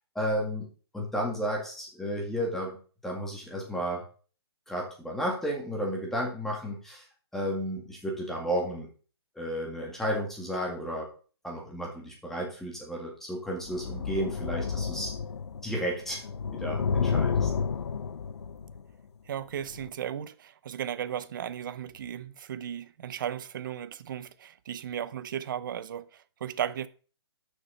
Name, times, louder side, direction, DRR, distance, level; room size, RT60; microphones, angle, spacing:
voice 1, 0.2-0.7 0.9-2.8 3.0-4.0 4.7-7.0 7.3-8.9 9.4-11.1 11.4-15.1 15.6-16.2 16.6-17.5, equal, 5° left, 2.0 m, -32 dB
sound 1, 13.6-15.8 16.1-18.8 19.7-19.9, left 6 dB, 90° left, 0.7 m, -31 dB
voice 2, 19.3-26.9, right 9 dB, 50° right, 0.6 m, -35 dB
6.6 x 6.1 x 5.5 m
hypercardioid pair, 155°, 14 cm